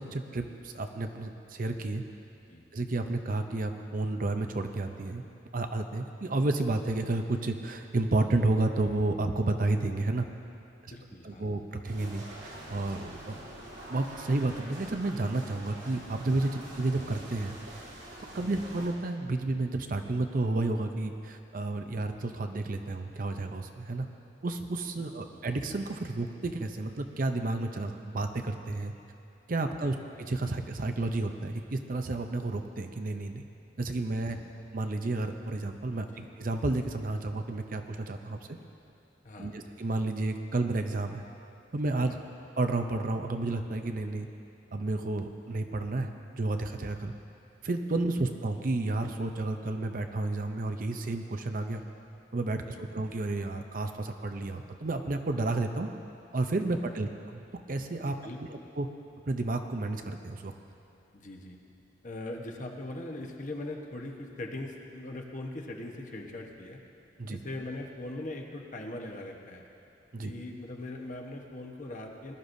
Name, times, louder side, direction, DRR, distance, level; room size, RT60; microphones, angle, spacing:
voice 1, 0.0-2.0 2.7-5.2 5.5-10.3 11.2-13.4 13.9-17.6 18.3-24.1 24.4-28.9 29.5-33.4 33.8-34.4 34.7-38.6 39.4-41.2 41.7-42.2 42.6-44.3 44.7-46.1 46.3-47.1 47.6-51.8 52.3-55.9 56.3-57.4 57.7-58.3 58.8-58.9 59.3-60.5 67.2-67.4 70.1-70.3, right 2 dB, 50° right, 6 dB, 0.6 m, -31 dB
voice 2, 10.8-11.5 18.4-18.6 29.8-29.9 34.3-34.4 36.1-36.3 39.2-39.6 42.1-42.2 52.7-52.9 58.2-58.7 61.1-61.6 62.0-66.8 67.3-69.7 70.2-72.3, left 2 dB, 45° left, 1 dB, 1.1 m, -41 dB
sound 1, 11.8-18.9, right 1 dB, 80° right, 2.8 m, -45 dB
20.0 x 11.5 x 2.7 m, 2.6 s
head